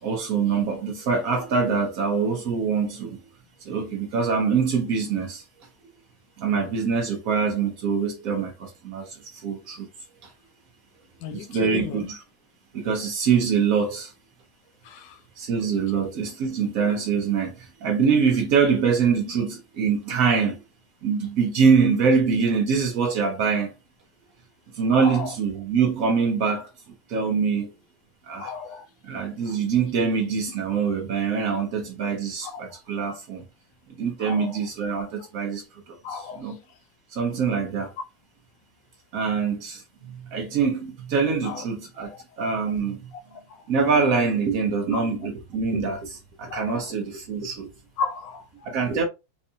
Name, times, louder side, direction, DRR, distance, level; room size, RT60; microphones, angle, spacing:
voice 1, 0.0-3.2 3.6-5.4 6.4-9.9 10.2-10.3 11.3-12.2 12.7-14.1 15.4-20.6 21.0-23.7 24.7-26.7 27.1-27.7 28.2-28.5 29.0-33.4 34.0-36.6 37.1-37.9 39.1-43.1 43.7-47.7 48.6-49.0, right 5 dB, 85° right, 0.7 m, -24 dB
voice 2, 11.2-12.0 14.8-15.2 15.9-16.0 24.9-25.3 28.4-28.8 32.4-32.6 34.2-34.5 36.0-36.4 41.4-41.6 43.5-43.6 44.9-45.0 46.5-46.9 48.0-48.7, left 6 dB, 70° left, 1.1 m, -34 dB
4.5 x 2.6 x 2.7 m
omnidirectional pair, 2.4 m